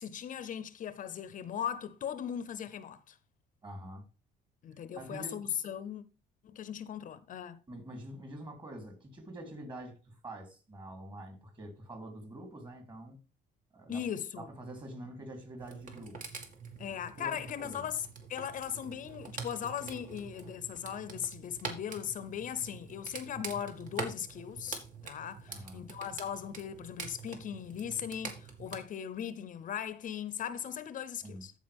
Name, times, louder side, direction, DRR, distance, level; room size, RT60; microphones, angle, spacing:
voice 1, 0.0-3.2 4.6-6.0 6.4-7.6 13.9-14.5 16.8-18.0 18.3-31.5, left 9 dB, 50° left, 0.7 m, -38 dB
voice 2, 3.6-4.0 4.9-5.4 7.7-13.2 13.7-14.1 14.4-16.2 17.2-17.8 25.5-25.9 31.2-31.4, right 1 dB, 30° right, 3.4 m, -46 dB
sound 1, 15.6-28.8, right 4 dB, 50° right, 2.2 m, -45 dB
14.5 x 4.9 x 3.5 m
cardioid pair, 110°, 17 cm